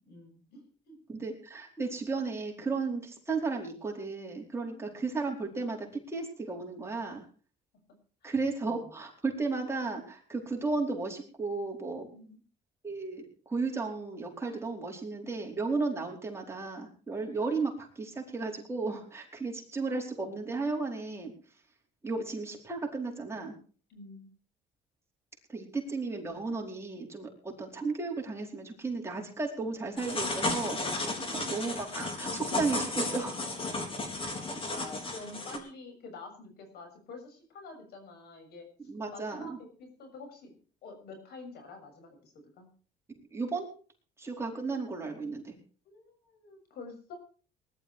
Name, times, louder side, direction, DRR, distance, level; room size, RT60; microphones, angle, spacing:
voice 1, 0.0-1.0 4.7-5.0 8.2-8.3 8.6-8.8 12.1-12.4 23.9-24.3 31.2-31.3 34.1-38.7 39.1-40.6 40.8-42.7 45.9-47.2, left 3 dB, 70° left, 5 dB, 6.9 m, -48 dB
voice 2, 1.1-7.2 8.2-12.1 12.8-21.3 22.0-23.6 25.5-33.4 38.9-39.6 43.3-43.7 44.2-45.6, right 3 dB, 15° right, 0 dB, 4.6 m, -34 dB
sound 1, 30.0-35.6, left 2 dB, 30° left, 4.0 m, -34 dB
20.0 x 12.0 x 4.7 m, 0.40 s
cardioid pair, 110°, 17 cm